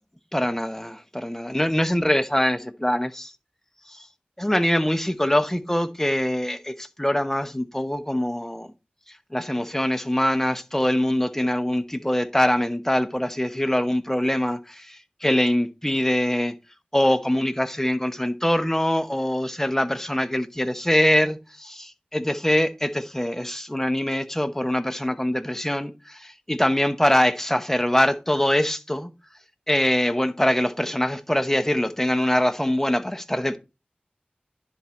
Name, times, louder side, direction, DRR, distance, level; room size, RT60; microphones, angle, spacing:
voice 1, 0.3-3.3 3.9-4.1 4.4-8.7 9.1-16.5 16.9-29.1 29.7-33.6, left 1 dB, 10° left, 0.8 m, -23 dB
10.5 x 4.5 x 4.2 m
wide cardioid pair, 45°, 3 cm